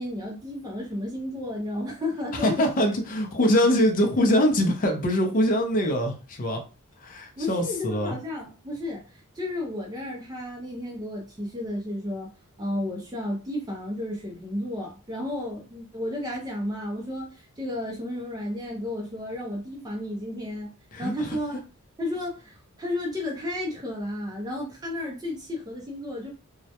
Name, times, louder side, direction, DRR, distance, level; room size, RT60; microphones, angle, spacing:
voice 1, 0.0-2.7 7.4-12.3 12.6-20.7 21.0-21.6 22.0-26.3, left 1 dB, 15° right, 0.4 m, -32 dB
voice 2, 2.3-6.6 7.0-8.2 20.9-21.4, equal, 40° left, 0.4 m, -23 dB
2.2 x 2.0 x 2.7 m
head